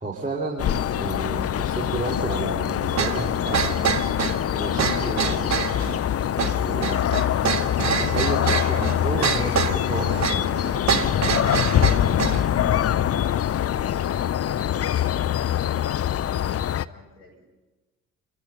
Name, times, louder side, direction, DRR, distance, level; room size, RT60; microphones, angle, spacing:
voice 1, 0.0-3.8 4.5-5.6 6.5-7.0 7.8-10.6, right 3 dB, 15° right, -2 dB, 4.9 m, -32 dB
sound 1, 0.6-16.8, left 10 dB, 35° left, 0.7 m, -24 dB
sound 2, 3.0-12.4, right 7 dB, 40° right, 2.1 m, -26 dB
voice 2, 8.6-9.1 15.6-17.4, left 4 dB, 90° left, -1 dB, 5.0 m, -46 dB
29.0 x 24.5 x 5.5 m, 1.2 s
figure-of-eight pair, 50°, 43 cm